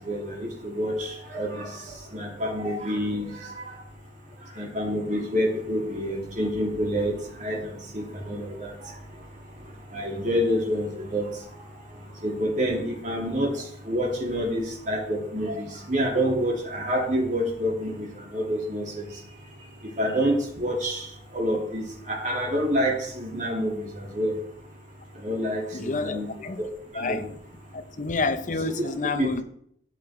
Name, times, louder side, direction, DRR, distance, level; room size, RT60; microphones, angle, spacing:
voice 1, 0.1-1.6 2.1-3.3 4.6-7.1 7.4-7.6 7.9-8.7 9.9-11.3 12.2-13.5 13.9-18.1 18.3-19.1 20.0-21.0 21.3-24.3 25.2-26.3 26.9-27.2 28.6-28.7 29.2-29.3, equal, 45° right, 3.1 m, -27 dB
voice 2, 25.7-26.6 26.9-27.3 27.7-29.4, left 3 dB, 45° left, 0.8 m, -29 dB
13.5 x 8.5 x 3.8 m
head